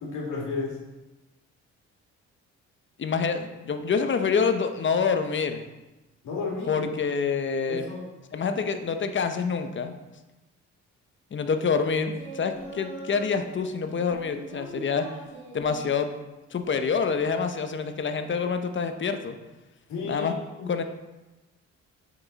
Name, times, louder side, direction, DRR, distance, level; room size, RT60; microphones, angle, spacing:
voice 1, 0.0-0.8 6.2-6.9 7.7-8.1 19.9-20.7, left 4 dB, 80° left, -3 dB, 2.5 m, -33 dB
voice 2, 3.0-5.6 6.7-7.8 8.3-9.9 11.3-15.1 15.5-16.1 16.5-19.4 20.1-20.3 20.7-20.8, left 5 dB, 40° left, 7 dB, 0.8 m, -26 dB
Singing, 12.1-13.4 13.9-15.9 16.7-17.3, right 2 dB, 20° right, 3.0 m, -42 dB
7.7 x 6.1 x 4.1 m, 1.1 s
cardioid pair, 90°, 30 cm